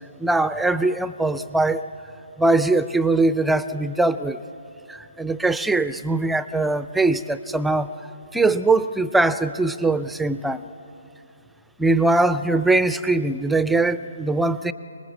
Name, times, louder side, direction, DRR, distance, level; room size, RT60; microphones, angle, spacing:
voice 1, 0.2-1.9 2.4-4.4 4.9-7.9 8.3-10.6 11.8-14.7, right 2 dB, 5° right, 14 dB, 0.5 m, -21 dB
24.5 x 20.0 x 8.2 m, 2.7 s
figure-of-eight pair, 135°, 0 cm